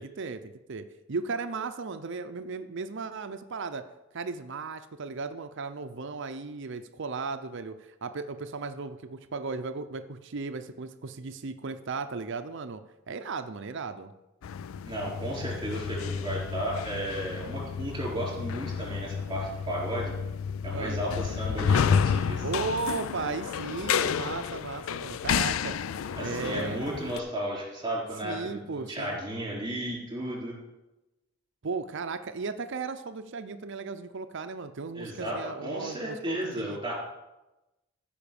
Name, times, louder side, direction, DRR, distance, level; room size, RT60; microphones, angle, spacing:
voice 1, 0.0-3.8 4.1-12.8 13.1-14.1 20.7-21.0 22.4-25.8 26.2-26.8 28.2-29.2 31.6-36.8, right 4 dB, 60° right, 10 dB, 0.6 m, -36 dB
sound 1, 14.4-27.2, left 7 dB, 75° left, 0.4 m, -31 dB
voice 2, 14.8-20.1 20.6-22.5 26.2-30.6 35.0-36.9, right 1 dB, 20° right, -2 dB, 4.1 m, -34 dB
14.0 x 5.2 x 7.0 m, 1.0 s
head